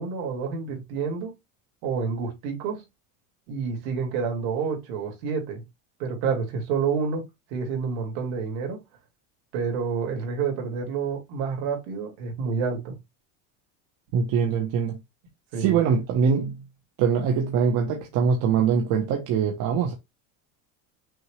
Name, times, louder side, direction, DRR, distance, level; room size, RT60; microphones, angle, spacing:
voice 1, 0.0-1.3 1.8-2.8 3.5-5.6 6.0-7.2 7.5-8.8 9.5-13.0 15.5-15.8, right 5 dB, 60° right, 2.4 m, -28 dB
voice 2, 14.1-15.0 15.6-16.6 17.0-19.9, right 6 dB, 45° right, 1.0 m, -23 dB
6.2 x 2.5 x 3.2 m
cardioid pair, 155°, 43 cm